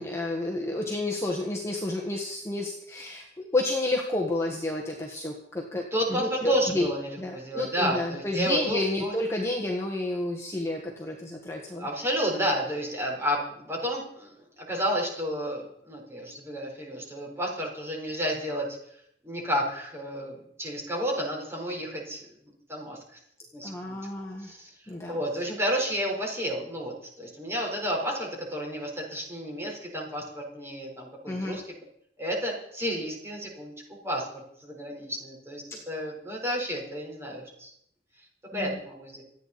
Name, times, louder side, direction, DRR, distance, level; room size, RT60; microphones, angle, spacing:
voice 1, 0.0-5.8 6.1-6.9 7.2-11.9 23.6-24.5 24.9-25.2 31.3-31.6 38.5-38.8, left 2 dB, 15° left, -1 dB, 1.6 m, -30 dB
voice 2, 5.9-9.1 11.8-18.7 19.2-22.2 22.7-23.0 23.5-24.0 24.4-24.7 25.1-31.6 32.2-37.7 38.5-39.2, equal, 15° right, -1 dB, 4.4 m, -31 dB
27.0 x 9.4 x 4.3 m, 0.72 s
head